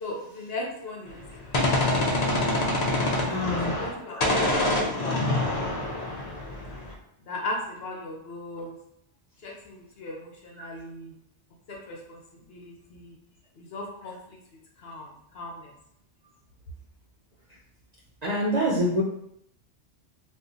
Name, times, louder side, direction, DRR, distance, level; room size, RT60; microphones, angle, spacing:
voice 1, 0.0-1.2 3.5-4.4 4.7-5.4 7.3-8.8 9.4-11.1 11.7-12.2 12.5-13.1 13.6-14.4 14.8-15.7, left 2 dB, 65° left, -1 dB, 0.9 m, -37 dB
Gunshot gunfire, 1.1-4.0 4.2-6.9, left 1 dB, 45° left, 0.6 m, -26 dB
voice 2, 3.3-3.7 18.2-19.0, equal, 50° right, -4 dB, 0.5 m, -27 dB
2.7 x 2.4 x 3.7 m, 0.74 s
omnidirectional pair, 1.2 m